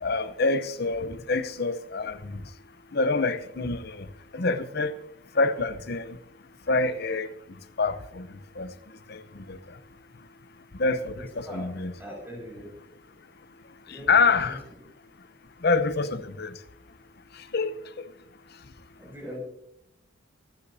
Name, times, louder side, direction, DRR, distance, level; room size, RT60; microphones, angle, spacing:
voice 1, 0.0-2.4 2.9-4.1 4.3-4.9 5.4-6.2 6.7-7.3 7.8-8.3 8.6-8.7 9.1-9.6 10.8-11.9 13.9-14.6 15.6-16.6 17.5-17.8, left 3 dB, 50° left, 0.8 m, -26 dB
voice 2, 11.1-11.7 12.0-12.7 13.9-14.5 19.0-19.4, equal, 10° right, 6.2 m, -41 dB
25.5 x 9.9 x 2.7 m
head